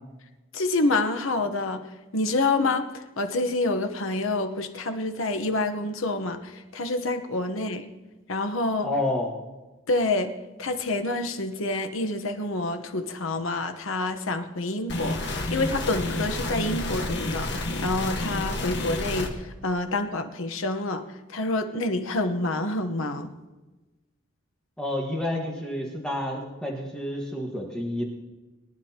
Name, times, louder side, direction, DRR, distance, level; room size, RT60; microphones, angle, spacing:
voice 1, 0.5-1.8 2.1-7.9 8.3-8.9 9.9-10.3 10.6-21.0 21.3-23.3, left 2 dB, 80° left, 7 dB, 1.0 m, -27 dB
voice 2, 8.8-9.3 24.8-28.0, left 1 dB, 5° left, -2 dB, 1.4 m, -29 dB
sound 1, 14.9-19.3, left 2 dB, 55° left, 1.4 m, -29 dB
22.0 x 10.5 x 2.9 m, 1.2 s
head